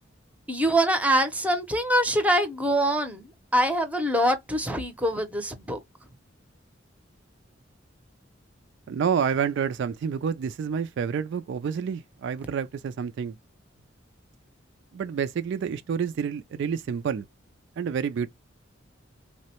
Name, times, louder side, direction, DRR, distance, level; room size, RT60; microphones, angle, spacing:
voice 1, 0.5-5.8, right 1 dB, 5° right, 0.6 m, -24 dB
voice 2, 8.9-13.4 14.9-17.2 17.8-18.3, right 7 dB, 65° right, 0.3 m, -28 dB
3.7 x 2.1 x 2.8 m
head